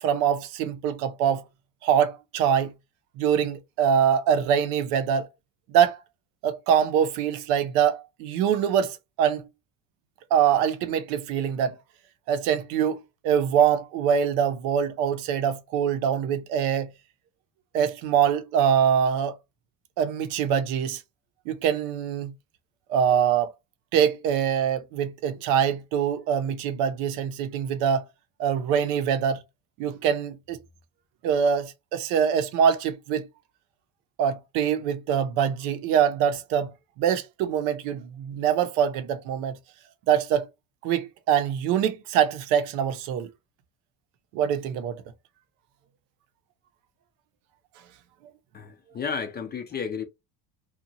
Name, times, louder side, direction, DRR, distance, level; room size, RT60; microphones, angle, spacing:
voice 1, 0.0-1.4 1.8-2.7 3.2-5.3 5.7-6.0 6.4-9.5 10.3-11.8 12.3-16.9 17.7-19.3 20.0-21.0 21.5-22.3 22.9-23.5 23.9-28.0 28.4-29.4 29.8-30.6 31.2-33.3 34.2-36.7 37.0-39.5 40.1-40.5 40.8-43.3 44.3-45.0, right 8 dB, 80° right, 0.7 m, -24 dB
voice 2, 48.5-50.0, left 6 dB, 25° left, 0.4 m, -32 dB
2.8 x 2.3 x 2.6 m
supercardioid pair, 120°, 44 cm